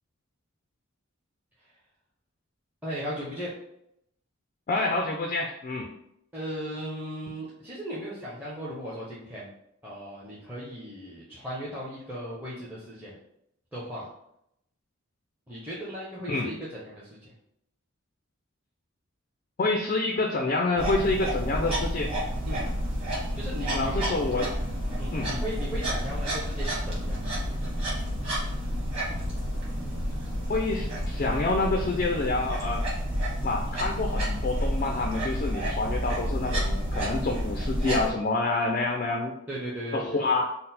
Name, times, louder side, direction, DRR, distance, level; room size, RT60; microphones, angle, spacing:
voice 1, 2.8-3.5 6.3-9.5 9.8-13.1 13.7-14.1 15.5-16.6 16.8-17.3 22.5-22.7 23.3-24.1 25.0-27.2 39.5-40.2, equal, 10° right, -8 dB, 0.6 m, -37 dB
voice 2, 4.7-5.9 16.3-16.5 19.6-22.1 23.7-24.5 25.1-25.3 30.5-32.9 33.4-39.3 39.9-40.5, left 2 dB, 40° left, 2 dB, 0.3 m, -27 dB
sound 1, 20.8-38.1, equal, 30° right, 1.3 m, -30 dB
4.0 x 2.0 x 4.0 m, 0.77 s
head